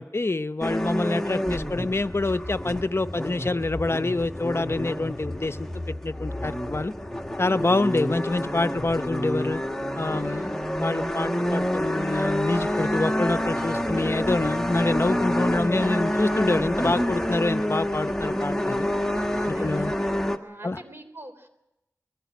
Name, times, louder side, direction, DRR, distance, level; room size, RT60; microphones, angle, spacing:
voice 1, 0.0-6.9 7.4-9.6 10.0-18.9 19.4-19.9 20.6-20.8, left 2 dB, 45° left, 12 dB, 0.7 m, -26 dB
sound 1, 0.6-20.4, equal, 10° left, 1.7 m, -28 dB
voice 2, 10.0-10.5 19.3-21.5, right 1 dB, 40° right, 8 dB, 3.5 m, -42 dB
21.5 x 15.0 x 9.3 m, 0.90 s
wide cardioid pair, 45°, 6 cm